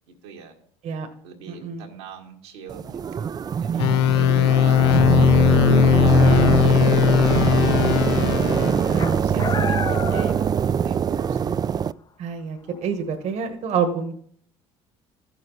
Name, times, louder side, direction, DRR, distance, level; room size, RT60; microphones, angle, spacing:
voice 1, 0.1-0.6 1.2-5.6 6.1-8.3 9.0-11.5, right 6 dB, 85° right, 1 dB, 1.6 m, -43 dB
voice 2, 1.5-1.8 4.1-4.5 8.8-9.9 12.2-14.2, right 6 dB, 60° right, 5 dB, 1.3 m, -28 dB
sound 1, 2.7-11.9, right 7 dB, 30° right, 0.3 m, -22 dB
sound 2, 3.8-9.0, left 11 dB, 85° left, 0.4 m, -19 dB
sound 3, 9.0-11.2 11.5-11.6 12.8-12.9, left 5 dB, 30° left, 0.6 m, -31 dB
14.5 x 6.6 x 3.9 m, 0.62 s
hypercardioid pair, 65°, 13 cm